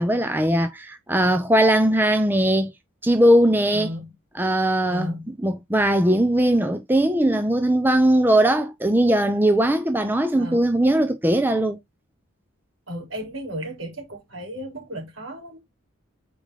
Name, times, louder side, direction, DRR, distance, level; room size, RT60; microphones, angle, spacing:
voice 1, 0.0-2.7 3.0-3.9 4.3-5.2 5.4-11.8, right 1 dB, 10° right, 0.7 m, -19 dB
voice 2, 3.7-4.1 4.9-5.3 10.4-10.7 12.9-15.6, equal, 70° right, 3.7 m, -34 dB
7.1 x 5.0 x 3.8 m
head